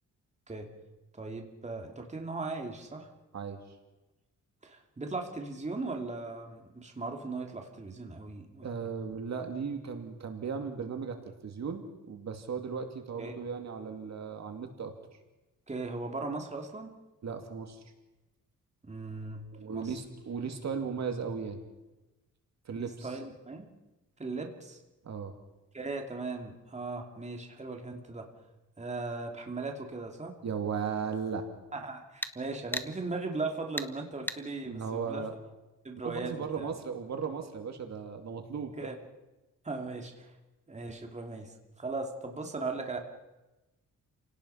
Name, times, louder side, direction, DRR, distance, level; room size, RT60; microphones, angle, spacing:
voice 1, 1.2-3.1 4.6-8.7 13.2-13.3 15.7-16.9 18.8-19.5 19.7-19.9 22.8-23.7 24.2-24.8 25.7-28.3 28.8-30.3 31.7-35.2 35.8-36.7 38.8-39.0 39.6-40.3 40.7-43.0, right 3 dB, 20° right, 2 dB, 2.7 m, -38 dB
voice 2, 8.6-14.9 17.2-17.8 19.5-21.6 22.6-23.2 25.0-25.4 30.4-31.5 34.6-35.3 35.9-38.9, right 6 dB, 55° right, 5 dB, 2.6 m, -36 dB
sound 1, 27.8-27.9 32.2-32.4 32.7-32.9 33.8-33.9 34.3-34.4, left 1 dB, 5° left, 1.2 m, -35 dB
30.0 x 18.0 x 5.7 m, 1.0 s
cardioid pair, 115°, 32 cm